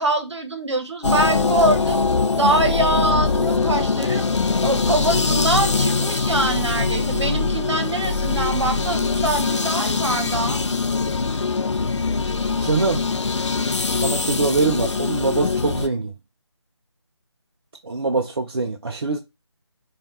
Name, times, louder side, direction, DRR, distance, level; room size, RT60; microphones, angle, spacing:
voice 1, 0.0-2.0 2.3-4.3 4.6-10.6, right 1 dB, 70° right, 1.1 m, -23 dB
sound 1, 1.0-15.9, left 4 dB, 80° left, 0.5 m, -22 dB
voice 2, 12.6-13.0 14.0-16.1 17.8-19.2, right 3 dB, 55° right, 0.5 m, -23 dB
4.8 x 2.4 x 2.7 m
figure-of-eight pair, 160°, 15 cm